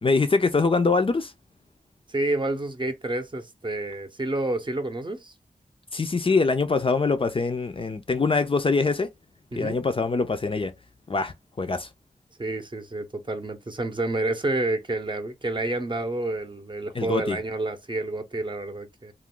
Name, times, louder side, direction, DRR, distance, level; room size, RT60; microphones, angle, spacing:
voice 1, 0.0-1.3 5.9-9.1 9.6-10.7 11.1-11.9 17.0-17.4, left 4 dB, 35° left, 0.4 m, -23 dB
voice 2, 2.1-5.3 9.5-9.8 12.4-19.1, right 2 dB, 30° right, 0.7 m, -29 dB
2.4 x 2.1 x 3.6 m
cardioid pair, 50°, 15 cm